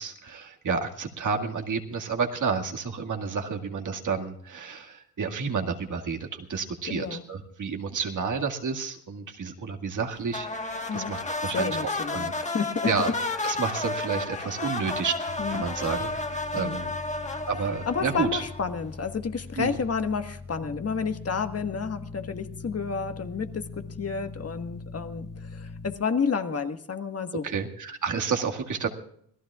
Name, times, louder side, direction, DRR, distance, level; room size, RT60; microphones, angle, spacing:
voice 1, 0.0-12.3 12.8-13.1 13.4-15.1 15.5-16.1 16.5-16.9 17.5-18.4 19.6-19.8 27.4-28.9, right 5 dB, 55° right, 3 dB, 2.1 m, -30 dB
voice 2, 6.9-7.2 10.9-11.1 11.5-13.1 14.4-14.5 15.4-15.6 16.5-16.8 17.9-27.4, left 5 dB, 40° left, 7 dB, 1.5 m, -30 dB
sound 1, 10.3-18.8, left 2 dB, 20° left, 1.4 m, -32 dB
sound 2, 15.3-25.9, left 3 dB, 80° left, 4.0 m, -42 dB
26.5 x 17.5 x 2.4 m, 0.66 s
cardioid pair, 95°, 37 cm